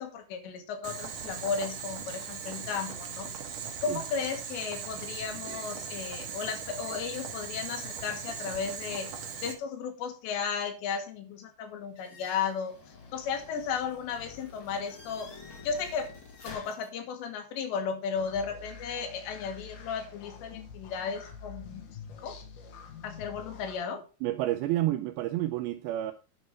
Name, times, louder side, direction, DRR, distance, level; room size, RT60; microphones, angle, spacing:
voice 1, 0.0-3.3 3.8-9.1 9.4-12.8 13.1-15.3 15.7-16.1 16.4-21.8 22.2-22.4 23.0-24.0, left 6 dB, 80° left, 3.6 m, -34 dB
Boiling, 0.8-9.5, right 6 dB, 60° right, 2.4 m, -39 dB
sound 1, 11.9-16.9, left 4 dB, 45° left, 1.8 m, -49 dB
sound 2, 18.1-23.8, left 5 dB, 60° left, 2.6 m, -47 dB
voice 2, 24.2-26.1, right 14 dB, 85° right, 2.1 m, -29 dB
9.1 x 5.6 x 4.9 m
omnidirectional pair, 5.0 m